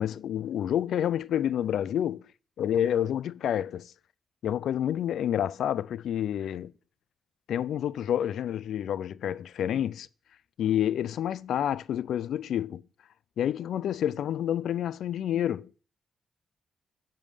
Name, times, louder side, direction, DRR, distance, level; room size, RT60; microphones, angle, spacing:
voice 1, 0.0-2.3 2.6-3.9 4.4-6.7 7.5-10.1 10.6-12.8 13.4-15.8, left 10 dB, 80° left, 0.3 m, -29 dB
10.5 x 3.7 x 6.5 m
cardioid pair, 110°, 0 cm